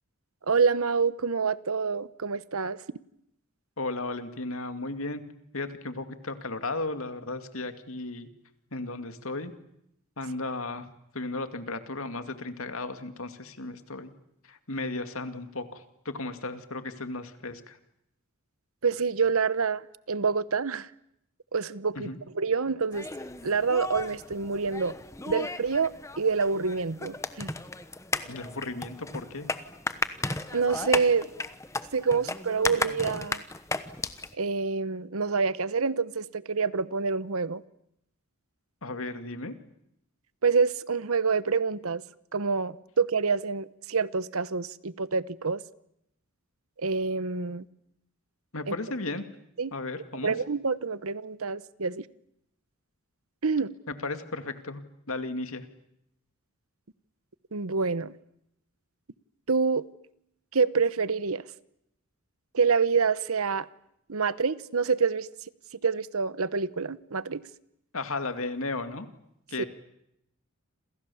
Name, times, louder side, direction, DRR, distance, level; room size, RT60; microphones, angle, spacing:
voice 1, 0.5-2.8 18.8-20.9 21.5-23.1 23.4-24.9 25.3-27.5 30.5-31.3 31.9-33.4 34.4-37.6 40.4-42.0 42.3-45.6 46.8-47.6 48.7-48.8 49.6-49.7 50.2-52.0 53.4-53.7 57.5-58.1 59.5-59.8 60.5-61.4 62.5-63.7 64.1-65.3 65.8-67.4 69.6-69.7, right 5 dB, 75° right, 1.0 m, -27 dB
voice 2, 3.8-5.2 5.5-8.3 8.7-9.5 10.2-10.9 11.1-14.1 14.5-17.8 22.0-22.2 28.3-29.5 38.8-39.5 48.5-49.2 49.7-50.3 53.9-54.8 55.1-55.6 67.9-69.1 69.5-69.7, left 2 dB, 70° left, 2.4 m, -35 dB
sound 1, 22.9-34.3, left 3 dB, 15° left, 1.1 m, -35 dB
28.5 x 27.5 x 7.2 m
head